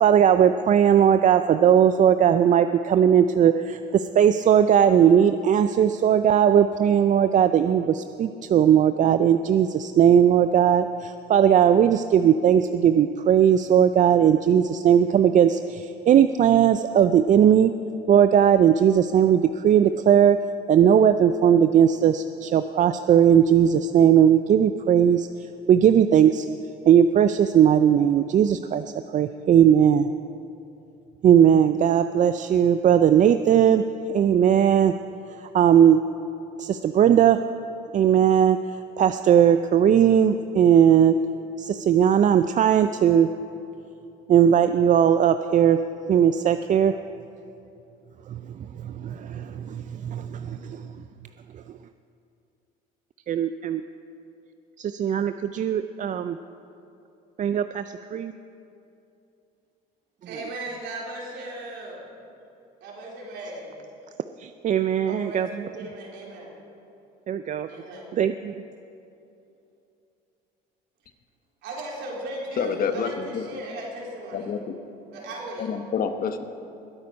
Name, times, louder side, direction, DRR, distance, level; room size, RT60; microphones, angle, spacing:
voice 1, 0.0-17.7 18.1-20.4 20.7-25.3 25.7-26.5 26.9-28.8 29.1-30.1 31.2-33.8 34.1-35.0 35.5-36.0 36.6-37.4 37.9-38.6 39.0-41.2 41.6-43.3 44.3-45.8 46.1-46.9 48.3-48.4 48.8-50.9 53.3-53.8 54.8-56.4 57.4-58.3 64.4-65.5 67.3-67.7 68.1-68.5, right 9 dB, 40° right, 10 dB, 0.4 m, -18 dB
voice 2, 60.2-62.1 62.8-63.8 65.0-66.5 67.7-68.1 71.6-74.6 75.1-75.7, right 1 dB, 70° right, -3 dB, 4.0 m, -37 dB
voice 3, 72.6-73.4 74.3-74.8 75.6-76.4, left 6 dB, 50° left, 8 dB, 1.0 m, -28 dB
20.5 x 8.9 x 5.3 m, 2.8 s
supercardioid pair, 90°, 19 cm